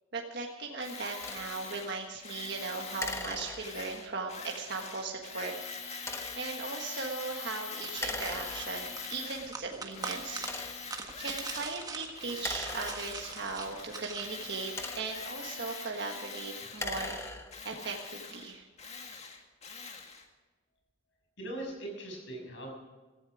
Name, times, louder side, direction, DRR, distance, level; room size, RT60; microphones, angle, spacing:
voice 1, 0.1-5.5 6.4-10.5 11.2-17.2 17.6-18.7, right 4 dB, 60° right, 0 dB, 1.5 m, -38 dB
Tools, 0.8-9.6 9.9-11.9 12.1-20.2, left 5 dB, 35° left, 1.9 m, -44 dB
sound 1, 1.2-1.5 3.0-4.0 6.0-6.5 8.0-9.0 9.7-9.8 10.4-11.0 12.3-13.5 14.4-15.3 16.6-17.7, left 2 dB, 15° left, 1.2 m, -40 dB
sound 2, 7.8-14.3, right 4 dB, 20° right, 1.5 m, -43 dB
voice 2, 21.4-22.7, right 1 dB, 65° left, 1 dB, 6.7 m, -40 dB
17.0 x 14.5 x 4.9 m, 1.3 s
head